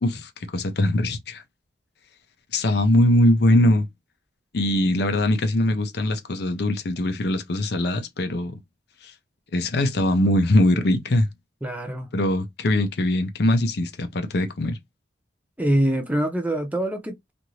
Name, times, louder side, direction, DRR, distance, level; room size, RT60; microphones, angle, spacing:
voice 1, 0.0-1.4 2.5-3.9 4.5-8.6 9.0-9.1 9.5-11.3 12.1-14.8, left 1 dB, 60° left, 0.6 m, -21 dB
voice 2, 11.6-12.1 15.6-17.3, right 1 dB, 10° right, 0.6 m, -24 dB
2.8 x 2.5 x 3.0 m
head